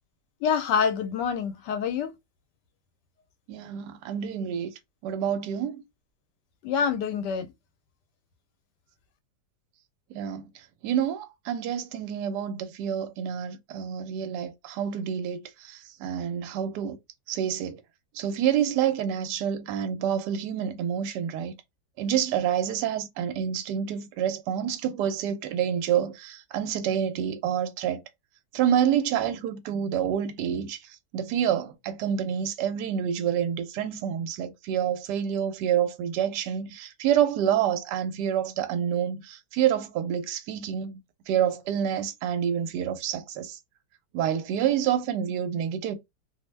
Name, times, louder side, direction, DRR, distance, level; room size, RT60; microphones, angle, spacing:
voice 1, 0.4-2.1 6.6-7.5, left 7 dB, 85° left, 1.2 m, -26 dB
voice 2, 3.5-4.7 5.0-5.8 10.1-10.5 10.8-17.0 17.3-17.8 18.1-21.5 22.0-28.0 28.5-30.8 31.1-41.0 41.3-43.6 44.1-46.0, right 9 dB, 85° right, 1.2 m, -28 dB
2.9 x 2.0 x 3.2 m
omnidirectional pair, 1.8 m